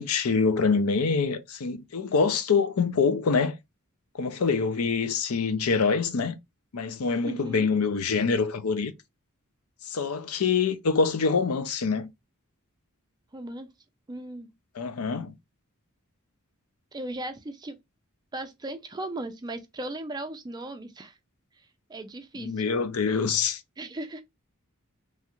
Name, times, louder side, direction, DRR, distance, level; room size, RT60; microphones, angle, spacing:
voice 1, 0.0-3.6 4.1-6.4 6.7-8.9 9.8-12.1 14.8-15.3 22.3-23.6, left 5 dB, 90° left, 0.5 m, -25 dB
voice 2, 7.2-7.7 13.3-13.7 14.1-14.5 16.9-17.8 18.3-21.1 21.9-22.7 23.8-24.2, right 1 dB, 20° right, 0.4 m, -37 dB
3.1 x 2.4 x 2.9 m
head